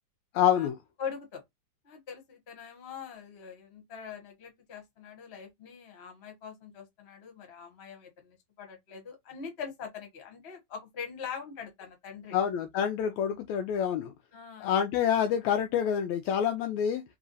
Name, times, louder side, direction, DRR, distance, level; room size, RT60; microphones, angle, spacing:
voice 1, 0.3-0.8 12.3-14.1 14.6-17.0, left 9 dB, 80° left, 1.7 m, -27 dB
voice 2, 1.0-1.4 1.8-12.4 14.3-14.7, left 6 dB, 35° left, 1.1 m, -43 dB
5.0 x 3.0 x 2.6 m
omnidirectional pair, 3.6 m